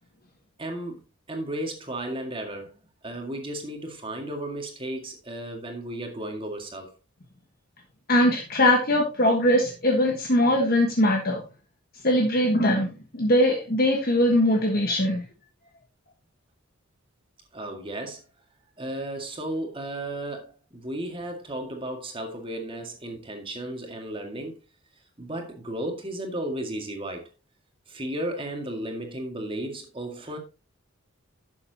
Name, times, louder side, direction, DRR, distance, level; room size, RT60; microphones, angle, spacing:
voice 1, 0.6-1.0 1.3-7.0 17.5-18.2 18.8-24.6 25.2-27.3 27.9-30.4, right 1 dB, 25° right, 2.0 m, -34 dB
voice 2, 8.1-11.4 12.0-15.2, left 1 dB, 45° left, 1.4 m, -21 dB
12.0 x 7.2 x 2.9 m
head